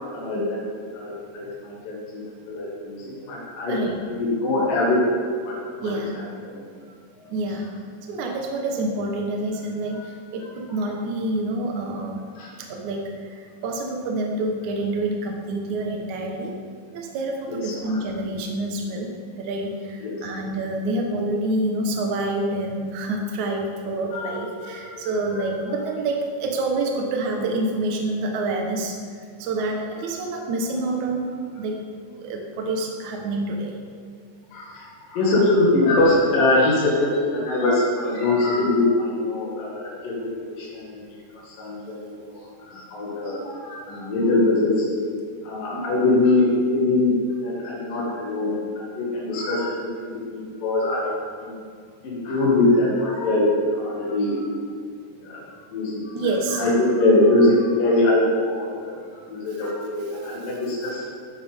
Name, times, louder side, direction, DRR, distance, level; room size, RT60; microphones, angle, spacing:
voice 1, 0.1-0.6 0.9-5.6 5.9-6.7 7.2-7.3 9.9-10.1 12.4-12.5 17.5-18.0 20.0-20.2 24.1-25.5 30.0-30.1 34.5-41.1 41.4-45.0 45.4-47.1 47.4-51.1 51.4-51.6 52.0-54.4 55.2-55.4 55.7-56.1 56.5-59.0 59.3-61.0, left 2 dB, 85° left, -6 dB, 3.7 m, -23 dB
voice 2, 3.7-4.0 5.8-6.2 7.3-7.7 8.1-12.2 12.7-16.5 16.9-29.0 29.4-31.8 32.2-33.8 45.7-45.9 56.1-56.6, right 2 dB, 70° right, 1 dB, 2.4 m, -27 dB
14.0 x 9.6 x 3.6 m, 2.2 s
omnidirectional pair, 3.8 m